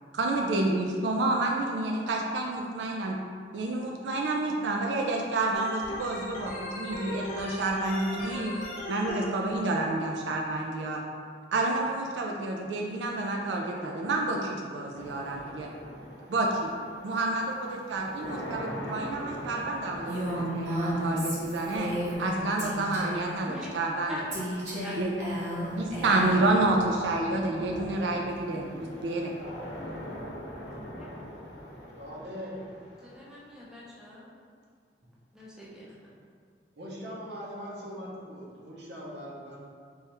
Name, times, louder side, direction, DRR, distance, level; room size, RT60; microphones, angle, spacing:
voice 1, 0.1-3.2 3.5-11.0 11.5-15.7 16.3-16.7 17.0-21.9 22.2-24.3 25.0-25.1 25.8-29.3, right 2 dB, 85° right, 0 dB, 0.4 m, -29 dB
Organ, 5.5-9.2, left 1 dB, 45° left, 0.8 m, -38 dB
sound 1, 14.9-34.0, equal, 80° left, 0.8 m, -43 dB
Female speech woman speaking, 20.1-22.3 22.6-23.3 24.3-26.4, equal, 45° right, 1.0 m, -33 dB
voice 2, 31.9-32.6 36.8-39.6, equal, 70° right, -4 dB, 0.8 m, -40 dB
voice 3, 33.0-34.3 35.3-35.9, left 1 dB, 5° right, -7 dB, 0.6 m, -43 dB
3.4 x 3.2 x 3.0 m, 2.1 s
head